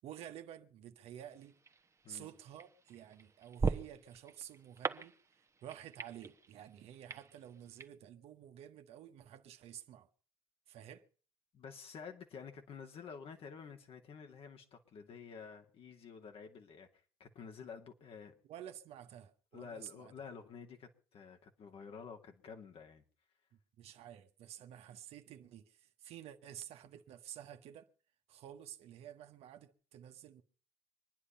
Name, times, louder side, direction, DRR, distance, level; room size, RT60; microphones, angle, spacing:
voice 1, 0.0-1.6 2.1-10.1 10.7-11.0 18.5-20.1 23.8-27.9 28.3-30.4, right 10 dB, 70° right, 1.3 m, -51 dB
sound 1, 1.3-7.9, right 4 dB, 25° right, 1.2 m, -42 dB
voice 2, 11.5-18.3 19.5-23.0, left 6 dB, 60° left, 2.5 m, -50 dB
24.5 x 10.0 x 5.5 m
hypercardioid pair, 55°, 11 cm